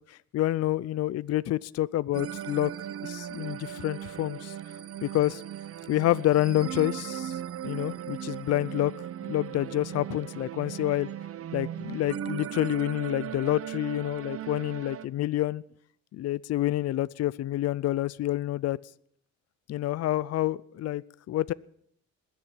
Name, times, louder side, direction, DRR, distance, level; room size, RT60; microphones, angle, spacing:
voice 1, 0.1-2.7 3.0-4.5 5.0-5.4 5.9-8.9 9.3-11.1 11.5-15.6 16.1-18.8 19.7-21.5, left 14 dB, 55° left, 21 dB, 0.5 m, -28 dB
sound 1, 2.1-15.1, right 10 dB, 50° right, 0.7 m, -37 dB
20.5 x 7.3 x 8.4 m, 0.67 s
cardioid pair, 90°, 30 cm